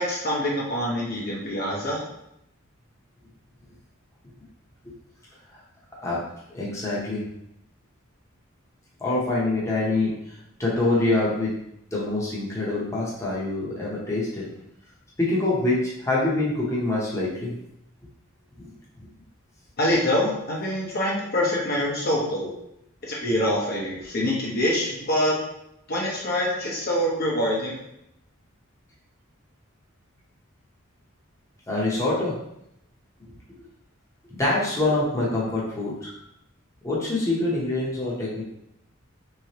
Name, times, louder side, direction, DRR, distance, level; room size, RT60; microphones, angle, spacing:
voice 1, 0.0-2.0 19.8-22.6 23.0-25.4 25.9-27.8, left 1 dB, 50° left, -3 dB, 0.8 m, -25 dB
voice 2, 6.5-7.2 9.0-11.5 11.9-14.5 15.2-17.5 18.6-18.7 31.7-32.4 33.2-33.3 33.5-33.6 34.3-36.1 36.8-38.4, left 2 dB, 15° left, -6 dB, 0.8 m, -25 dB
3.4 x 3.2 x 2.9 m, 0.79 s
head